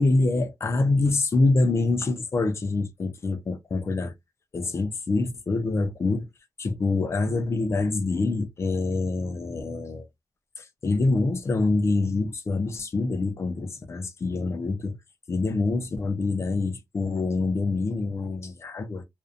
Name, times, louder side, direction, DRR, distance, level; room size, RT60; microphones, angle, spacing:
voice 1, 0.0-4.1 4.5-6.3 6.6-10.1 10.6-15.0 15.3-19.0, left 3 dB, 35° left, 0.5 m, -25 dB
2.5 x 2.2 x 2.5 m
wide cardioid pair, 155°, 8 cm